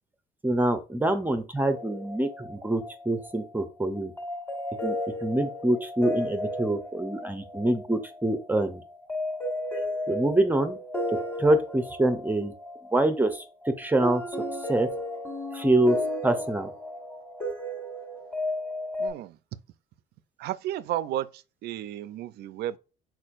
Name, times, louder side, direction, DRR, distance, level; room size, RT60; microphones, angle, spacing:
voice 1, 0.4-4.1 4.8-8.8 10.1-10.8 11.4-12.5 12.9-14.2 14.7-14.9 15.5-16.0 16.2-16.7, right 1 dB, 10° right, 0.6 m, -25 dB
sound 1, 1.6-19.1, left 1 dB, 10° left, 1.6 m, -34 dB
voice 2, 19.0-19.4 20.4-22.8, right 12 dB, 70° right, 0.4 m, -33 dB
4.4 x 4.3 x 2.5 m
cardioid pair, 110°, 17 cm